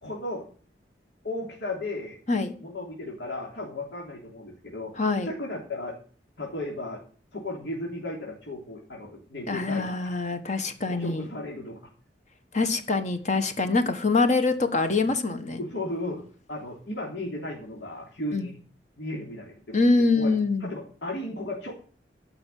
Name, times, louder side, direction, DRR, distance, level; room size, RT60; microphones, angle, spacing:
voice 1, 0.0-0.4 1.2-2.2 2.6-4.9 5.2-6.0 6.4-7.0 7.3-10.1 10.9-11.8 13.7-13.8 15.6-16.2 16.5-18.6 19.0-19.7 20.1-21.7, left 1 dB, 75° left, -2 dB, 3.3 m, -35 dB
voice 2, 5.0-5.3 9.5-11.3 12.5-15.6 18.3-18.5 19.7-20.7, left 3 dB, 45° left, 8 dB, 1.3 m, -24 dB
14.0 x 5.8 x 9.2 m, 0.43 s
head